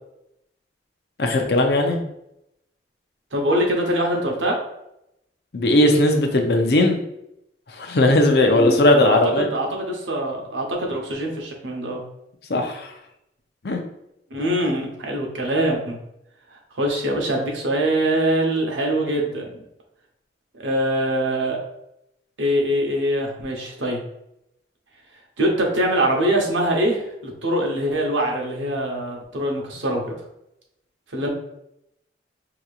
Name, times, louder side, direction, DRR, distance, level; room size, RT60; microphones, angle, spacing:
voice 1, 1.2-2.0 5.5-7.0 7.8-9.5 12.5-12.9 13.6-13.8, left 1 dB, 60° left, 4 dB, 0.6 m, -18 dB
voice 2, 3.3-4.6 8.5-12.0 14.3-16.0 16.5-19.6 20.6-21.6 22.4-24.0 25.4-30.2 31.1-31.3, right 1 dB, 80° right, 0 dB, 0.9 m, -23 dB
4.9 x 2.9 x 2.4 m, 0.82 s
head